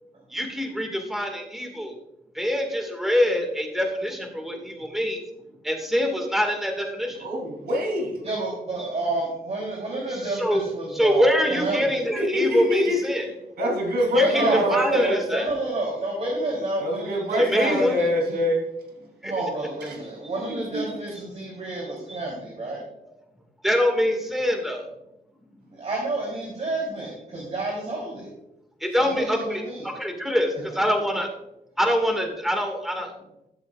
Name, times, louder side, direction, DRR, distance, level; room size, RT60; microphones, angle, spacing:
voice 1, 0.3-1.9 2.4-5.2 5.6-7.2 10.4-10.6 11.0-13.2 14.2-14.4 14.7-15.5 17.4-17.9 19.2-19.3 23.6-24.8 28.8-29.6 30.0-30.5 30.7-31.3 31.8-33.1, equal, ahead, 3 dB, 2.1 m, -24 dB
voice 2, 7.2-8.2 12.2-13.2 13.6-15.2 16.8-18.6 20.5-20.9, left 1 dB, 90° right, 0 dB, 3.7 m, -24 dB
voice 3, 8.2-12.1 14.2-18.4 19.2-22.8 25.7-28.3 29.0-29.9 30.7-30.8, right 2 dB, 45° right, -3 dB, 3.6 m, -30 dB
15.0 x 7.4 x 2.5 m, 0.86 s
cardioid pair, 95°, 16 cm